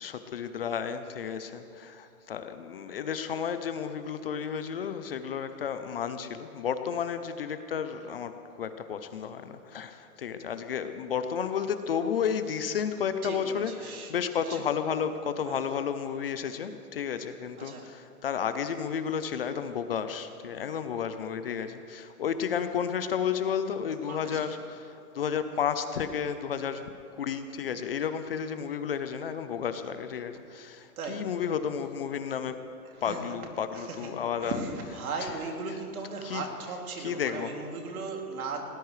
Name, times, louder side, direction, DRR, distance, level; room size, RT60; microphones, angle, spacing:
voice 1, 0.0-8.3 8.6-26.8 27.2-32.5 33.0-34.6 36.2-36.4 37.0-37.5, left 7 dB, 40° left, 9 dB, 0.6 m, -32 dB
voice 2, 13.2-14.1 14.4-14.6 15.5-15.6 17.6-17.9 24.1-24.5 31.0-31.3 32.8-33.3 33.7-34.1 34.4-38.6, right 4 dB, 65° right, 1 dB, 2.8 m, -37 dB
21.0 x 18.5 x 3.3 m, 2.6 s
hypercardioid pair, 165°, 46 cm